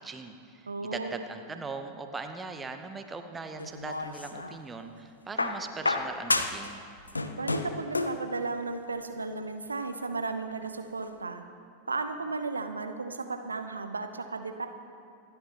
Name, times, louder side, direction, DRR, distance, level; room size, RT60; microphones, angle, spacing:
voice 1, 0.0-6.8, right 4 dB, 15° right, 6 dB, 0.9 m, -40 dB
voice 2, 0.7-1.2 7.3-11.4 11.9-14.7, right 3 dB, 80° right, 7 dB, 0.8 m, -34 dB
sound 1, 3.6-4.6 5.4-6.7 7.0-8.2 9.3-9.4, left 3 dB, 80° left, 0.7 m, -30 dB
26.5 x 11.5 x 3.0 m, 2.5 s
figure-of-eight pair, 90°, 0 cm